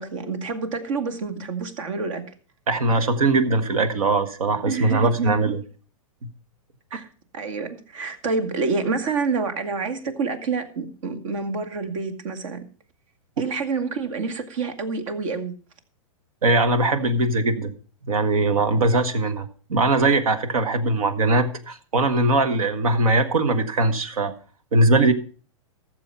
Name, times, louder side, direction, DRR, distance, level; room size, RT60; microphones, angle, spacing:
voice 1, 0.0-2.2 4.7-5.5 6.9-7.1 7.3-12.6 13.4-15.5, right 4 dB, 65° right, 2.1 m, -28 dB
voice 2, 2.7-5.6 16.4-17.7 18.1-24.3 24.7-25.1, right 2 dB, 90° right, 1.6 m, -21 dB
14.5 x 7.1 x 5.6 m
hypercardioid pair, 135°, 18 cm